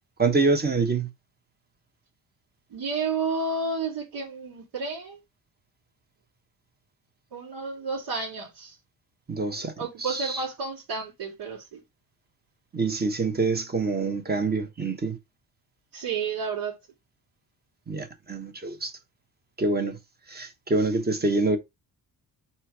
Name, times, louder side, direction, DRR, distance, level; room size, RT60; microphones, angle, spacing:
voice 1, 0.2-1.1 9.3-9.7 10.0-10.3 12.7-15.2 17.9-18.9 19.6-19.9 20.3-21.6, right 3 dB, 25° right, 1.1 m, -26 dB
voice 2, 2.7-5.2 7.3-8.7 9.6-11.8 14.0-14.1 15.9-16.8, right 4 dB, 80° right, 3.2 m, -31 dB
4.4 x 4.4 x 4.7 m
wide cardioid pair, 165°, 40 cm